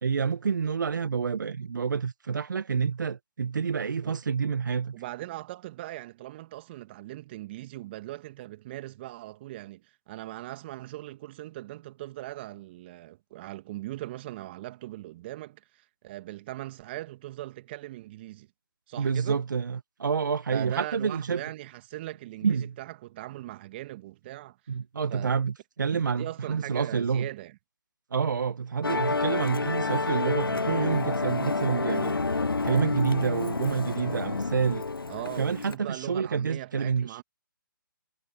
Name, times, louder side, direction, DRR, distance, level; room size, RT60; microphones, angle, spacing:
voice 1, 0.0-5.0 19.0-21.4 22.4-22.7 24.7-27.3 28.1-32.1 32.6-34.8 35.4-37.2, right 6 dB, 60° right, 1.8 m, -28 dB
voice 2, 4.9-18.5 18.9-19.4 20.5-24.6 25.1-25.4 25.9-27.6 35.1-37.2, right 16 dB, 30° right, 1.8 m, -40 dB
Musical instrument, 28.8-35.8, left 3 dB, 85° left, 0.8 m, -29 dB
figure-of-eight pair, 145°, 12 cm